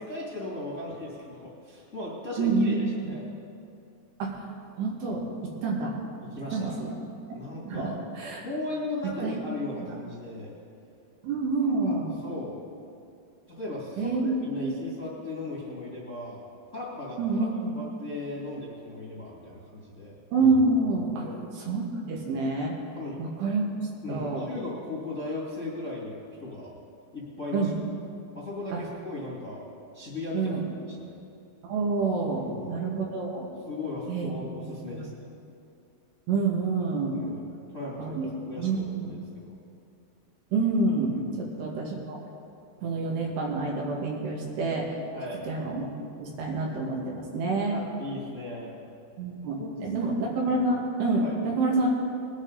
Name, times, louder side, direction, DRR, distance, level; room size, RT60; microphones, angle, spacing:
voice 1, 0.0-3.2 6.3-6.8 7.3-8.0 8.4-10.5 11.6-12.5 13.5-17.4 17.7-20.1 21.1-21.4 23.0-23.2 24.0-26.7 27.1-27.7 28.3-29.6 29.9-30.5 30.9-31.1 32.4-32.7 33.6-35.3 37.1-38.2 38.5-39.5 41.1-41.4 45.1-45.5 47.7-48.7 49.6-50.2 51.2-51.4, left 2 dB, 25° left, -5 dB, 1.7 m, -37 dB
voice 2, 2.4-2.8 4.2-4.4 4.8-5.2 5.6-5.9 6.5-6.9 7.3-7.4 7.7-7.9 8.2-8.5 9.2-9.4 9.8-10.0 11.2-12.2 14.0-14.7 17.2-17.7 20.3-21.2 21.6-22.8 23.2-23.6 24.1-24.5 27.5-27.8 28.7-28.8 30.3-30.6 31.6-33.5 34.1-34.3 34.6-35.0 36.3-37.2 38.0-38.3 38.6-39.2 40.5-42.2 42.8-45.0 45.5-45.9 46.2-47.8 49.2-52.0, right 3 dB, 80° right, -2 dB, 3.9 m, -27 dB
21.0 x 9.6 x 4.0 m, 2.5 s
omnidirectional pair, 4.8 m